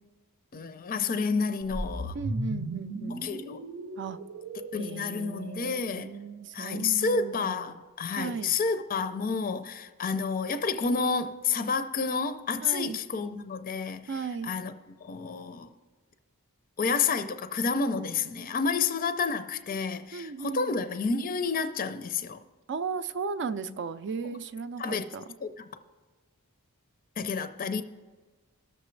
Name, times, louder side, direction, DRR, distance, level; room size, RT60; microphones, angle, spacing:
voice 1, 0.5-2.1 3.2-3.6 4.7-6.1 6.5-14.1 14.4-14.7 15.0-15.7 16.8-22.4 24.8-25.0 25.4-25.5 27.2-27.8, left 5 dB, 40° left, 0.5 m, -30 dB
sound 1, 1.6-5.9, right 1 dB, 90° right, 0.9 m, -36 dB
voice 2, 2.1-3.3 4.0-4.2 4.8-7.7 8.2-8.5 12.6-13.0 14.1-14.5 18.7-18.8 20.1-20.7 22.7-25.2, right 5 dB, 55° right, 0.4 m, -36 dB
19.5 x 6.8 x 3.2 m
head